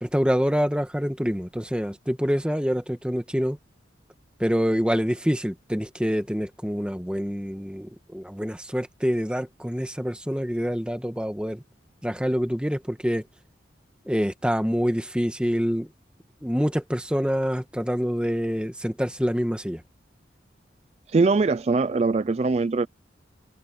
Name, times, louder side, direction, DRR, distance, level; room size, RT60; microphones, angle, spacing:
voice 1, 0.0-3.6 4.4-11.6 12.0-13.2 14.1-15.9 16.4-19.8, equal, 5° right, 1.5 m, -26 dB
voice 2, 21.1-22.9, right 3 dB, 35° right, 0.3 m, -22 dB
head